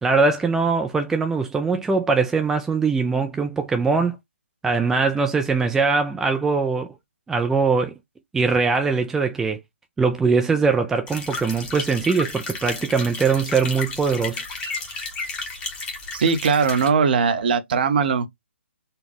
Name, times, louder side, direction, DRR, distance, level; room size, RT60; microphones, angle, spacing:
voice 1, 0.0-4.2 4.6-6.9 7.3-7.9 8.3-9.6 10.0-14.4, right 4 dB, 5° right, 0.4 m, -21 dB
sound 1, 11.1-16.9, left 3 dB, 15° left, 1.1 m, -33 dB
voice 2, 16.1-18.3, right 5 dB, 45° right, 0.9 m, -20 dB
4.2 x 2.3 x 3.4 m
figure-of-eight pair, 135°, 7 cm